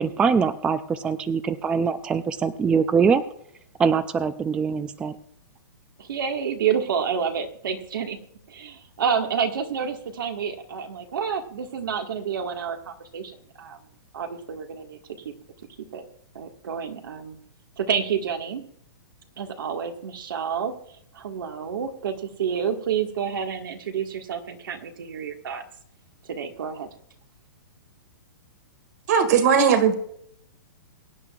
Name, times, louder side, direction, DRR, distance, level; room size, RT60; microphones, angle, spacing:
voice 1, 0.0-3.2 3.8-5.2, right 6 dB, 10° right, 13 dB, 0.3 m, -23 dB
voice 2, 6.0-8.2 8.5-13.8 14.1-15.0 15.2-15.3 15.9-16.1 16.3-17.4 17.8-18.6 19.4-25.6 26.2-26.9, right 7 dB, 80° right, 5 dB, 1.8 m, -29 dB
voice 3, 29.1-29.9, right 7 dB, 50° right, 9 dB, 1.8 m, -18 dB
22.5 x 9.4 x 2.4 m, 0.68 s
hypercardioid pair, 155°, 11 cm